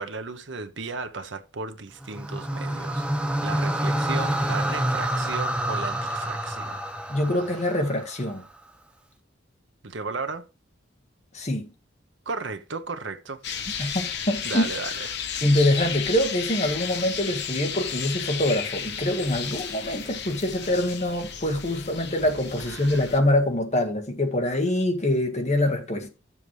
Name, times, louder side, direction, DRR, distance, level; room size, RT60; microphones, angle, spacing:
voice 1, 0.0-3.1 3.4-6.8 9.8-10.4 12.3-13.4 14.4-15.1 20.6-20.7 22.7-23.1, right 4 dB, 65° right, 0.9 m, -35 dB
sound 1, 2.0-8.3, right 1 dB, 5° right, 0.7 m, -28 dB
voice 2, 7.1-8.4 11.3-11.7 13.8-14.7 15.4-26.1, left 1 dB, 35° left, 1.6 m, -24 dB
sound 2, 13.4-23.2, left 7 dB, 60° left, 1.0 m, -33 dB
13.5 x 7.2 x 3.3 m
head